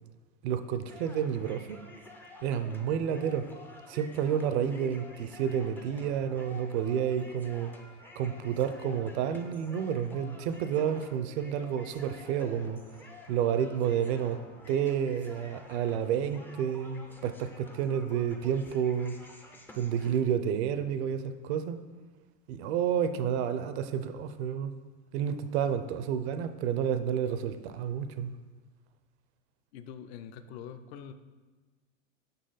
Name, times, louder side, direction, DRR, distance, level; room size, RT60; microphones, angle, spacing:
voice 1, 0.4-1.8 2.4-3.5 3.9-7.7 8.2-12.8 13.3-14.4 14.7-19.2 19.7-21.8 22.5-24.7 25.1-28.3, right 8 dB, 55° right, 11 dB, 0.6 m, -30 dB
sound 1, 0.9-20.2, left 2 dB, 5° left, 0.3 m, -51 dB
voice 2, 29.7-31.1, left 8 dB, 55° left, 10 dB, 0.5 m, -44 dB
5.9 x 4.1 x 3.9 m, 1.3 s
hypercardioid pair, 95°, 38 cm